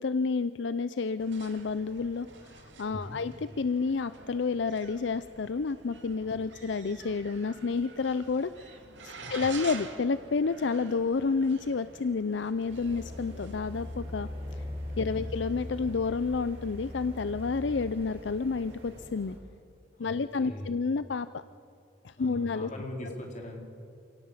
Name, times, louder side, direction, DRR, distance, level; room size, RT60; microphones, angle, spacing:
voice 1, 0.0-8.7 9.0-14.3 15.0-19.4 20.0-21.4 22.0-22.7, left 4 dB, 80° left, 13 dB, 0.5 m, -30 dB
sound 1, 1.2-19.0, right 4 dB, 85° right, 2.6 m, -49 dB
sound 2, 12.7-19.4, left 1 dB, 30° right, 5.8 m, -41 dB
voice 2, 19.9-20.7 22.2-23.6, left 1 dB, 40° left, 1 dB, 4.0 m, -41 dB
27.5 x 18.0 x 7.3 m, 2.5 s
head